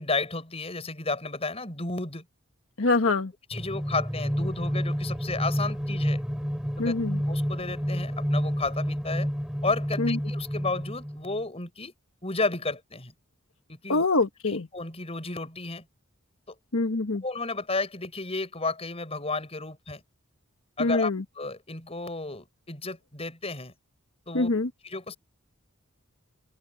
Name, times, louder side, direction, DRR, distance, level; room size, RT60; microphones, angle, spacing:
voice 1, 0.0-2.2 3.5-6.2 6.8-6.9 7.3-9.3 9.6-11.9 12.2-13.1 13.7-14.1 14.5-15.8 17.2-20.0 20.8-23.7 24.3-24.5 24.8-25.2, left 3 dB, 30° left, 7.0 m, -32 dB
voice 2, 2.8-3.3 6.8-7.2 10.0-10.2 13.9-14.7 16.7-17.2 20.8-21.2 24.3-24.7, left 3 dB, 75° left, 1.2 m, -24 dB
sound 1, 3.5-11.4, equal, 5° right, 3.4 m, -29 dB
open air
head